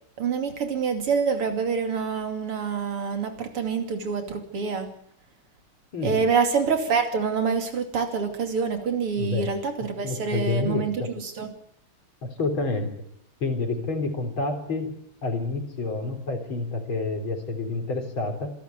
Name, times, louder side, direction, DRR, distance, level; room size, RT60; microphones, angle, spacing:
voice 1, 0.2-4.9 6.0-11.5, right 5 dB, 80° right, 6 dB, 3.5 m, -26 dB
voice 2, 5.9-6.3 9.2-9.5 10.0-11.1 12.2-12.9 13.4-14.9 15.2-18.5, left 3 dB, 65° left, 5 dB, 4.6 m, -28 dB
27.0 x 11.5 x 9.5 m, 0.69 s
omnidirectional pair, 2.4 m